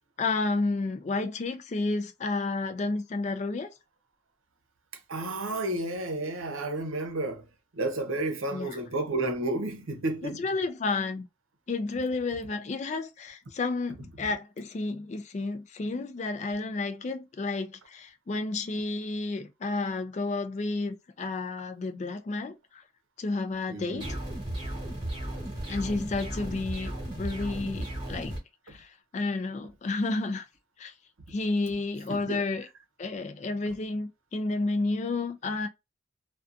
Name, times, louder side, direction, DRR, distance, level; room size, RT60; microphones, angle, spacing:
voice 1, 0.2-3.7 8.5-8.8 10.2-11.3 11.7-22.8 23.2-24.1 25.7-28.4 28.7-30.5 30.8-30.9 31.3-32.7 33.0-35.7, left 3 dB, 35° left, 0.3 m, -31 dB
voice 2, 5.1-7.4 7.7-10.4 23.7-24.1 32.1-32.4, right 2 dB, 85° right, 0.7 m, -31 dB
sound 1, 24.0-28.4, right 1 dB, 25° right, 1.0 m, -35 dB
2.5 x 2.3 x 2.5 m
head